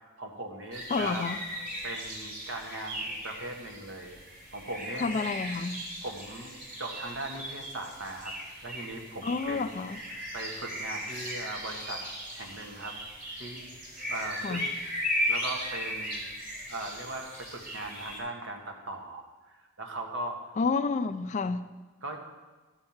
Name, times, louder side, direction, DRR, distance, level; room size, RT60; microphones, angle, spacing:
voice 1, 0.2-1.2 1.8-4.2 4.5-5.1 6.0-6.5 6.8-8.3 8.6-9.6 10.3-12.0 12.3-13.0 13.3-13.7 14.1-14.6 15.3-16.2 16.7-20.4 22.0-22.2, right 2 dB, 65° right, 1.4 m, -39 dB
sound 1, 0.7-18.2, equal, 45° right, 3.7 m, -37 dB
voice 2, 0.9-1.4 5.0-5.8 9.2-10.0 14.4-14.7 20.6-21.7, left 4 dB, 35° left, 0.3 m, -29 dB
12.5 x 4.5 x 7.2 m
head